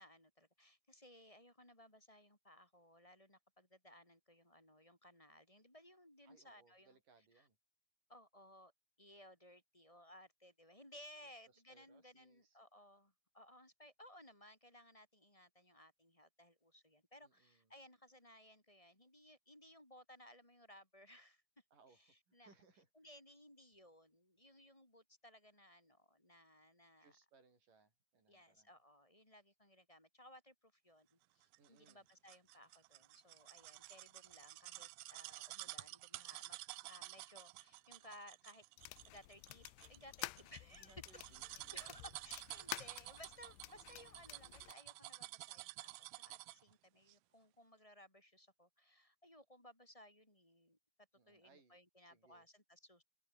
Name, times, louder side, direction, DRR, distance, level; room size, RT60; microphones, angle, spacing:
voice 1, 0.0-6.9 7.3-7.5 8.1-8.7 9.0-21.4 21.9-22.5 22.9-27.1 28.3-36.6 36.9-38.6 39.0-41.0 41.5-50.8 51.3-53.0, left 1 dB, 10° left, 3.4 m, -61 dB
voice 2, 6.3-7.6 11.5-12.6 17.2-17.7 21.7-23.1 27.0-28.7 31.6-32.1 40.7-42.1 51.1-51.8 52.1-52.5, right 4 dB, 50° right, 9.0 m, -69 dB
sound 1, 31.5-46.7 47.1-47.2, right 19 dB, 80° right, 2.4 m, -51 dB
sound 2, 38.8-44.7, left 20 dB, 85° left, 2.8 m, -51 dB
open air
omnidirectional pair, 4.9 m